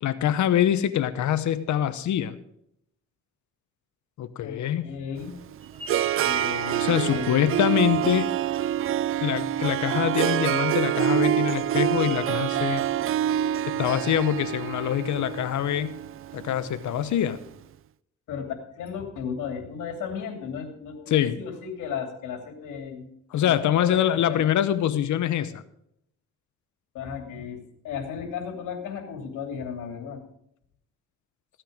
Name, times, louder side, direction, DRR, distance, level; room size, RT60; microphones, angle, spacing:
voice 1, 0.0-2.4 4.2-4.9 6.8-8.3 9.2-12.8 13.7-16.0 16.3-17.4 21.1-21.4 23.3-25.6, left 11 dB, 70° left, 13 dB, 0.9 m, -24 dB
voice 2, 4.4-5.3 5.8-5.9 6.2-7.4 18.3-23.1 23.4-24.4 26.9-30.2, left 7 dB, 85° left, 5 dB, 2.7 m, -35 dB
Harp, 5.2-17.4, right 11 dB, 45° right, 0.4 m, -26 dB
sound 1, 5.6-10.1, right 1 dB, 20° right, 1.4 m, -44 dB
15.0 x 9.0 x 5.0 m, 0.74 s
cardioid pair, 90°, 30 cm